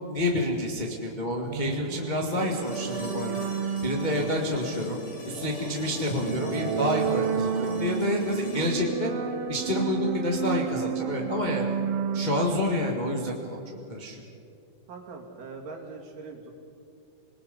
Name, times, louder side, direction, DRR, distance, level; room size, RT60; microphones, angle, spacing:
voice 1, 0.1-3.4 3.8-9.1 9.5-11.7 12.1-13.6 13.9-14.1, left 1 dB, 20° left, 0 dB, 1.2 m, -28 dB
sound 1, 1.4-13.9, right 8 dB, 85° right, 2.7 m, -32 dB
sound 2, 2.4-10.4 12.5-12.6, left 2 dB, 65° left, 4.5 m, -43 dB
voice 2, 14.9-16.5, right 4 dB, 65° right, 0 dB, 3.9 m, -41 dB
27.0 x 20.0 x 5.4 m, 2.5 s
omnidirectional pair, 4.2 m